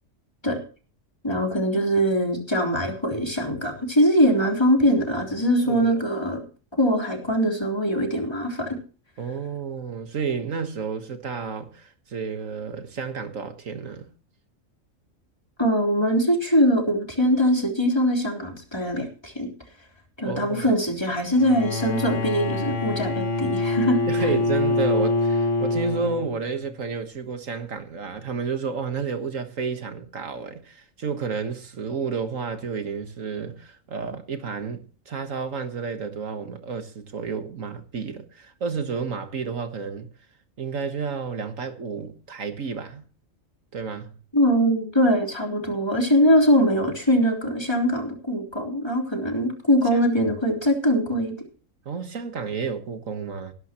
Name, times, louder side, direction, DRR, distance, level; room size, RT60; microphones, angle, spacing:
voice 1, 1.2-6.4 6.8-8.8 15.6-19.5 20.2-24.0 44.3-51.3, equal, 20° left, 3.7 m, -22 dB
voice 2, 5.7-6.0 9.2-14.1 20.3-20.7 24.1-40.1 40.6-43.0 43.7-44.2 49.9-50.0 51.9-53.5, right 5 dB, 75° right, 1.8 m, -31 dB
Bowed string instrument, 21.3-26.6, left 2 dB, 65° left, 1.8 m, -25 dB
19.0 x 11.5 x 3.0 m
omnidirectional pair, 1.4 m